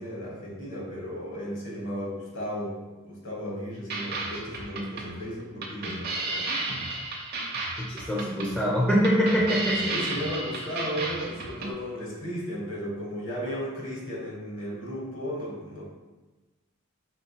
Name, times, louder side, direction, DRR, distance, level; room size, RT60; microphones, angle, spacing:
voice 1, 0.0-2.8 3.0-6.5 9.8-15.9, equal, 60° left, -4 dB, 1.4 m, -35 dB
sound 1, 3.9-11.7, right 2 dB, 45° right, 0.6 m, -33 dB
voice 2, 7.8-10.1, equal, 5° left, -5 dB, 0.5 m, -24 dB
4.4 x 4.1 x 2.8 m, 1.2 s
head